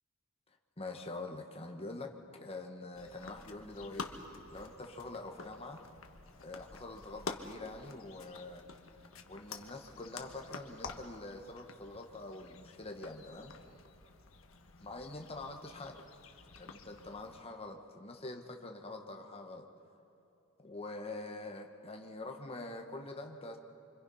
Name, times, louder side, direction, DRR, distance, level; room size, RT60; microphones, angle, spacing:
voice 1, 0.8-4.1 4.5-5.8 6.4-8.6 9.3-13.5 14.8-16.1 16.6-19.7 20.6-23.6, left 2 dB, 30° left, 3 dB, 1.4 m, -45 dB
sound 1, 2.9-17.4, left 4 dB, 90° left, 1.4 m, -49 dB
26.0 x 25.5 x 5.6 m, 2.9 s
head